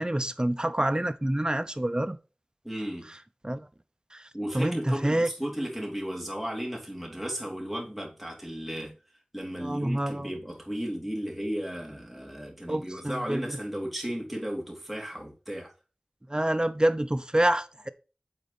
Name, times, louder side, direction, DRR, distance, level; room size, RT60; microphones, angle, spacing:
voice 1, 0.0-2.2 3.4-3.7 4.1-4.2 4.5-5.3 9.6-10.3 12.7-13.6 16.3-17.9, right 1 dB, 25° right, 0.7 m, -27 dB
voice 2, 2.6-3.1 4.3-8.9 9.3-15.7, equal, ahead, 3.0 m, -34 dB
8.5 x 4.1 x 4.1 m
wide cardioid pair, 40°, 3 cm